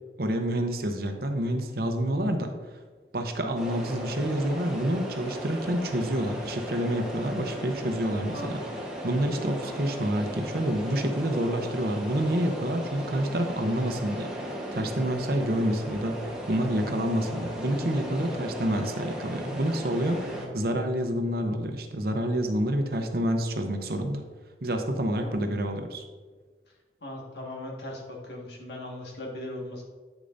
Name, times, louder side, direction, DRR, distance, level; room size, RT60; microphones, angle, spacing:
voice 1, 0.2-2.5 3.1-8.6 9.0-24.2 24.6-26.0, right 1 dB, 55° right, 5 dB, 0.8 m, -28 dB
sound 1, 3.5-20.4, equal, 5° right, 1.2 m, -36 dB
voice 2, 8.3-8.7 20.1-20.5 25.2-25.5 27.0-29.8, left 1 dB, 70° left, -1 dB, 1.7 m, -39 dB
9.2 x 6.6 x 2.6 m, 1.4 s
head